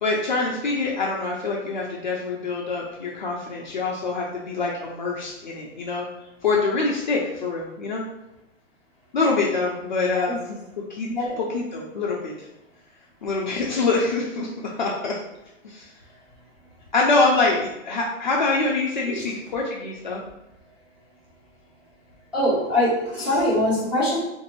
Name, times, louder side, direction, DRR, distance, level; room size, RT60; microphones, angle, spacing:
voice 1, 0.0-6.1 6.4-8.0 9.1-10.6 10.9-11.1 11.4-12.5 13.2-14.5 14.8-15.1 15.6-15.9 16.9-20.2, left 3 dB, 40° left, -3 dB, 0.5 m, -25 dB
voice 2, 11.1-11.4 19.0-19.3 22.3-24.2, left 1 dB, 5° right, -12 dB, 0.7 m, -23 dB
3.8 x 2.6 x 2.9 m, 0.92 s
hypercardioid pair, 165°, 38 cm